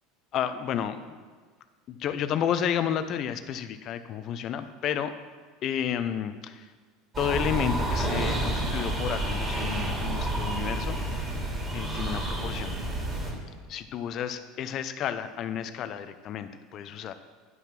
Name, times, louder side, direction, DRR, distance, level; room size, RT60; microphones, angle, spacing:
voice 1, 0.3-1.2 1.9-5.1 5.6-6.7 7.2-11.4 11.7-12.8 13.7-17.1, left 9 dB, 50° left, 11 dB, 0.7 m, -31 dB
sound 1, 7.1-13.3, right 1 dB, 30° right, 3.1 m, -29 dB
9.4 x 5.9 x 5.9 m, 1.5 s
supercardioid pair, 95°, 0 cm